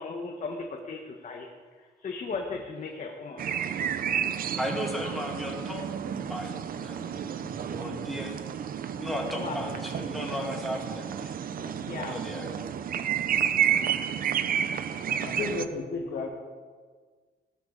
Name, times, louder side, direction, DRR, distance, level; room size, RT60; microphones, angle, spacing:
voice 1, 0.0-1.5 2.0-3.4 9.4-9.6 11.6-12.2 13.6-13.9, left 4 dB, 45° left, 1 dB, 1.3 m, -36 dB
sound 1, 3.4-15.7, right 9 dB, 55° right, 0.6 m, -31 dB
voice 2, 4.6-5.9 6.2-8.4 9.0-11.3 12.0-12.6, equal, ahead, -2 dB, 2.4 m, -35 dB
voice 3, 15.1-16.3, left 4 dB, 85° left, 0 dB, 2.5 m, -34 dB
17.0 x 12.0 x 4.0 m, 1.5 s
cardioid pair, 150°, 18 cm